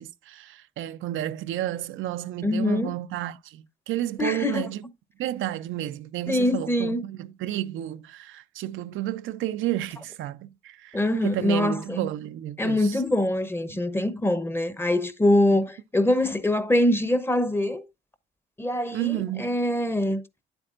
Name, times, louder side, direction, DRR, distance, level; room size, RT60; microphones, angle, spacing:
voice 1, 0.0-4.8 5.2-13.0 18.9-19.5, right 13 dB, 80° right, 0.5 m, -31 dB
voice 2, 2.4-2.9 4.2-4.6 6.3-7.0 10.9-12.0 12.6-17.8 18.6-20.2, left 1 dB, 10° left, 0.9 m, -24 dB
9.7 x 7.9 x 2.5 m
cardioid pair, 90°, 20 cm